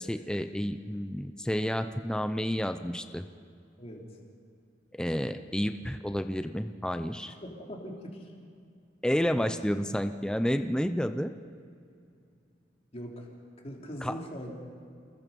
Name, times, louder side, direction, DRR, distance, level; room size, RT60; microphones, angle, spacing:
voice 1, 0.0-3.3 4.9-7.3 9.0-11.3 14.0-14.1, equal, 5° left, 8 dB, 0.6 m, -30 dB
voice 2, 7.3-8.3 12.9-13.3 13.6-14.7, equal, 35° left, -1 dB, 3.6 m, -41 dB
29.0 x 20.5 x 5.4 m, 2.4 s
head